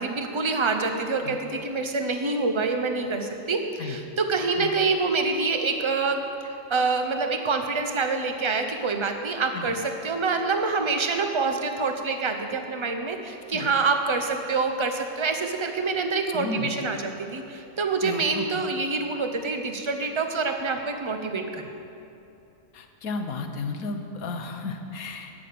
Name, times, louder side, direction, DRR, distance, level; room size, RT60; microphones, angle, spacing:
voice 1, 0.0-21.6, right 4 dB, 25° right, 5 dB, 0.8 m, -26 dB
voice 2, 16.3-16.7 18.0-18.6 22.7-25.3, left 3 dB, 75° left, 6 dB, 1.4 m, -33 dB
12.0 x 9.3 x 6.8 m, 2.9 s
omnidirectional pair, 1.5 m